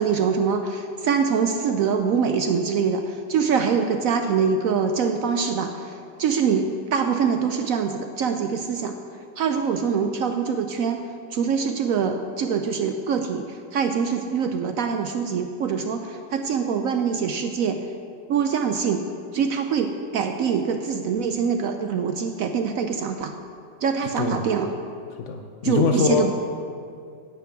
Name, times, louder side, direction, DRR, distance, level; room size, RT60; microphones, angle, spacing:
voice 1, 0.0-9.0 9.4-11.0 11.3-17.8 18.3-19.1 19.3-23.3 23.8-24.7 25.6-26.3, right 6 dB, 80° right, 6 dB, 0.7 m, -24 dB
voice 2, 25.3-26.3, left 6 dB, 75° left, 5 dB, 0.6 m, -23 dB
10.5 x 5.9 x 8.2 m, 2.3 s
omnidirectional pair, 2.0 m